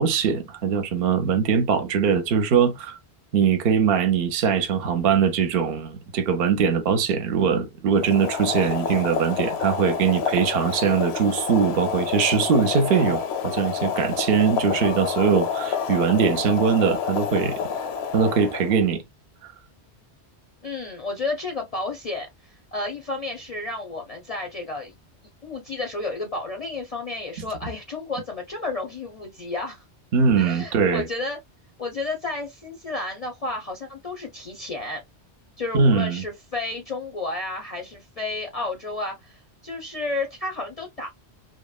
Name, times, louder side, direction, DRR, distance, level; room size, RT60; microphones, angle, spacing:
voice 1, 0.0-3.0 3.3-17.6 18.1-19.0 30.1-31.1 35.7-36.2, right 6 dB, 65° right, 0.8 m, -21 dB
Boiling, 7.9-18.9, left 7 dB, 75° left, 0.8 m, -28 dB
voice 2, 20.6-24.9 25.4-29.8 30.4-31.4 31.8-35.0 35.6-41.1, left 2 dB, 45° left, 0.5 m, -32 dB
2.9 x 2.1 x 2.2 m
omnidirectional pair, 1.1 m